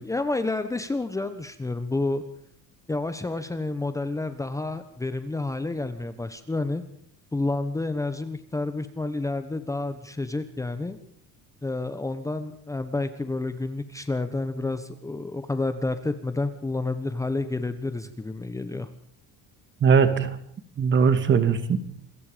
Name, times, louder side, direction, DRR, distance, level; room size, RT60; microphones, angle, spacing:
voice 1, 0.0-2.2 2.9-6.8 7.3-11.0 11.6-18.9, left 2 dB, 10° left, 10 dB, 1.2 m, -29 dB
voice 2, 19.8-20.4 20.8-21.8, right 6 dB, 30° right, 12 dB, 2.3 m, -20 dB
28.0 x 23.0 x 5.2 m, 0.65 s
cardioid pair, 165°, 37 cm